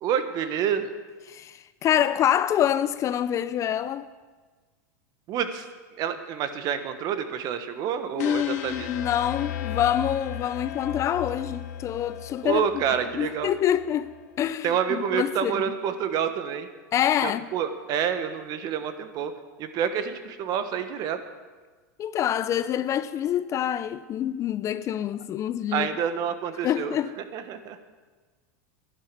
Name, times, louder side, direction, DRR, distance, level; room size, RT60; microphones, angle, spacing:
voice 1, 0.0-0.9 5.3-5.6 6.0-8.9 12.4-13.5 14.6-16.7 17.2-19.3 19.6-21.2 25.7-26.9 27.3-27.8, right 8 dB, 45° right, 1.3 m, -28 dB
voice 2, 1.3-4.1 8.2-14.1 14.4-15.6 16.9-17.5 22.0-25.9 26.6-27.1, left 10 dB, 35° left, 0.5 m, -26 dB
sound 1, 8.2-14.3, left 10 dB, 75° left, 1.3 m, -36 dB
11.5 x 11.0 x 6.8 m
hypercardioid pair, 115°, 9 cm